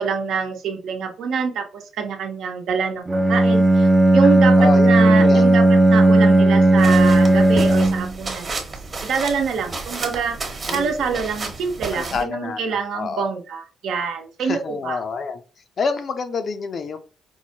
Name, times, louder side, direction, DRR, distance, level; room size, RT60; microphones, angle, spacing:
voice 1, 0.0-8.5 9.1-15.0, right 6 dB, 75° right, 4 dB, 0.8 m, -26 dB
Bowed string instrument, 3.1-8.2, right 2 dB, 15° right, 0.5 m, -14 dB
voice 2, 4.2-5.5 10.7-11.2 11.9-13.3 14.4-15.4 15.8-17.0, left 4 dB, 50° left, 9 dB, 0.6 m, -28 dB
sound 1, 6.8-12.2, right 3 dB, 35° right, 1.0 m, -32 dB
4.6 x 2.1 x 2.8 m, 0.35 s
cardioid pair, 90°, 0 cm